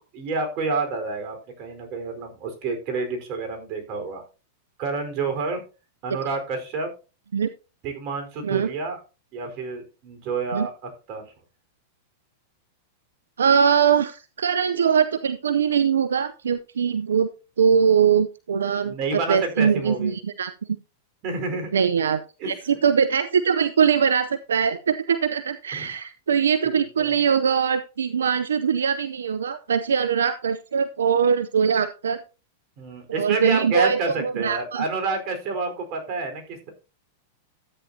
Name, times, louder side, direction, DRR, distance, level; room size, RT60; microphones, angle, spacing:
voice 1, 0.0-4.2 4.8-5.6 6.0-6.9 7.8-9.0 9.3-10.7 11.1-11.2 18.8-20.1 21.2-21.7 22.4-22.6 25.7-25.9 26.6-27.2 32.8-36.7, right 4 dB, 45° right, 5 dB, 4.5 m, -29 dB
voice 2, 13.4-17.3 17.6-20.5 21.7-32.2 33.2-34.8, right 7 dB, 90° right, 12 dB, 0.6 m, -22 dB
13.5 x 9.2 x 2.8 m, 0.32 s
hypercardioid pair, 115°, 0 cm